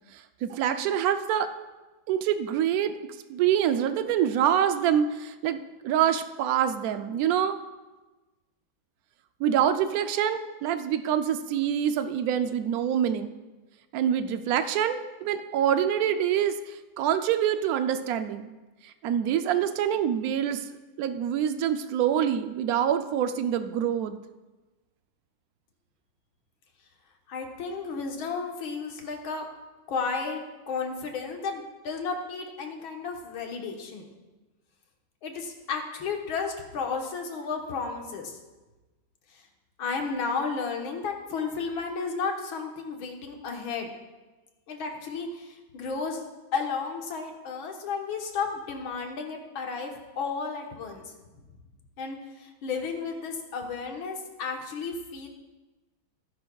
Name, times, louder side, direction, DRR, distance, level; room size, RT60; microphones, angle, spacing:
voice 1, 0.1-1.5 2.1-2.9 3.3-7.6 9.4-13.3 13.9-18.5 18.8-20.6 21.0-24.2, right 9 dB, 80° right, 9 dB, 0.8 m, -26 dB
voice 2, 27.3-29.5 29.9-34.0 35.2-38.4 39.8-43.9 44.7-46.2 46.5-51.1 52.0-55.3, left 5 dB, 85° left, 2 dB, 2.1 m, -33 dB
17.5 x 10.5 x 2.3 m, 1.2 s
omnidirectional pair, 2.2 m